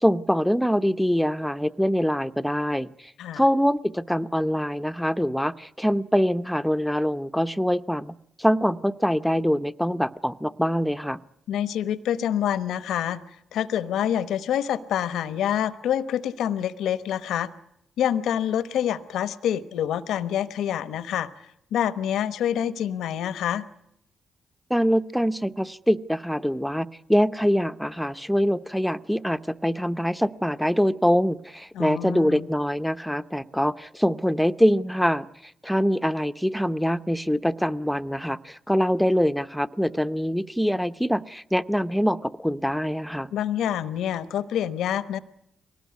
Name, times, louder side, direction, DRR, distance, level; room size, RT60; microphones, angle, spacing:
voice 1, 0.0-2.9 3.4-11.2 24.7-35.3 35.6-43.3, equal, ahead, 11 dB, 0.8 m, -24 dB
voice 2, 11.5-13.2 13.5-17.5 18.0-21.3 21.7-23.6 31.7-32.5 43.3-45.2, left 10 dB, 85° left, 13 dB, 1.0 m, -26 dB
23.0 x 18.5 x 9.5 m, 0.78 s
supercardioid pair, 60°, 0 cm